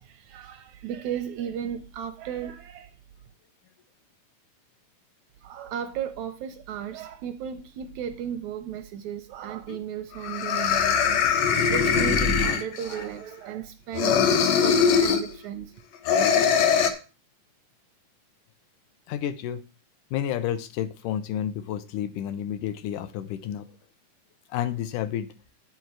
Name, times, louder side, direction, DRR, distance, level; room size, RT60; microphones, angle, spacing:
voice 1, 0.0-3.0 5.4-11.4 11.7-14.2 14.6-15.7, right 9 dB, 80° right, 1.7 m, -35 dB
sound 1, 9.7-9.8 10.2-13.0 13.9-15.3 16.1-16.9, left 6 dB, 65° left, 1.9 m, -21 dB
voice 2, 19.1-19.6 20.1-23.7 24.5-25.3, left 10 dB, 80° left, 2.1 m, -30 dB
9.1 x 7.3 x 4.6 m
omnidirectional pair, 3.8 m